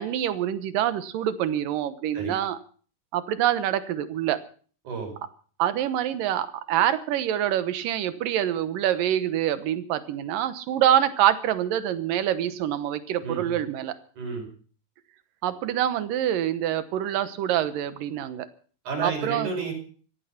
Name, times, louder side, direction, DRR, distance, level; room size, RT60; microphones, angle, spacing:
voice 1, 0.0-2.6 3.1-4.4 5.6-13.9 15.4-18.5 19.0-19.5, right 11 dB, 90° right, 13 dB, 2.8 m, -25 dB
voice 2, 13.2-13.6 14.2-14.5 18.9-19.7, right 4 dB, 65° right, 3 dB, 6.9 m, -31 dB
16.0 x 14.5 x 5.9 m, 0.43 s
omnidirectional pair, 3.8 m